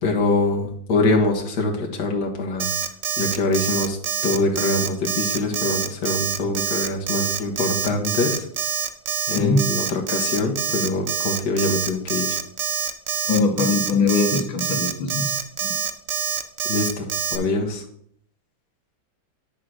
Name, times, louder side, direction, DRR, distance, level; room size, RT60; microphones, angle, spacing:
voice 1, 0.0-2.7 3.2-4.0 4.2-8.4 9.3-12.4 16.7-17.8, left 2 dB, 55° left, 0 dB, 1.7 m, -24 dB
Alarm, 2.6-17.4, right 7 dB, 75° right, 0.6 m, -25 dB
voice 2, 13.3-15.3 15.6-15.7, left 4 dB, 75° left, 2 dB, 1.9 m, -21 dB
10.0 x 3.7 x 6.2 m, 0.64 s
omnidirectional pair, 2.1 m